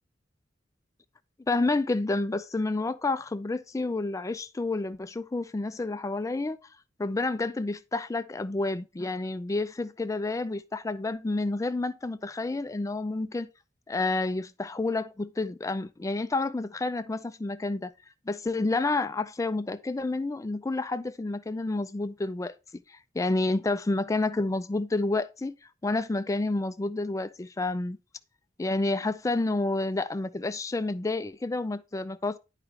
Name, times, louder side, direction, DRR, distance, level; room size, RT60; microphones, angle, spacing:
voice 1, 1.5-6.6 7.0-13.5 13.9-17.9 18.3-22.6 23.1-25.6 25.8-28.0 28.6-32.4, left 2 dB, 20° left, 0.4 m, -29 dB
9.6 x 4.9 x 3.2 m
head